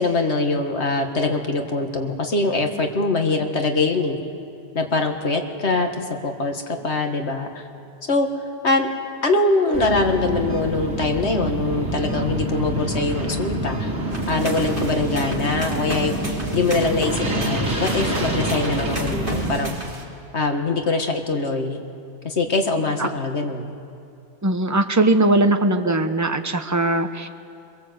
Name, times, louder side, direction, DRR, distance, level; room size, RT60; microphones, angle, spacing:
voice 1, 0.0-4.2 4.7-7.7 8.1-8.9 9.2-13.9 14.3-19.7 20.3-21.8 22.2-23.7, left 3 dB, 65° left, 4 dB, 2.1 m, -23 dB
sound 1, 9.7-19.6, right 1 dB, 60° right, 3.9 m, -26 dB
sound 2, 14.1-20.0, right 1 dB, 45° right, 3.3 m, -34 dB
voice 2, 24.4-27.3, right 2 dB, 15° right, 7 dB, 1.0 m, -20 dB
23.0 x 22.5 x 8.1 m, 2.6 s
omnidirectional pair, 1.3 m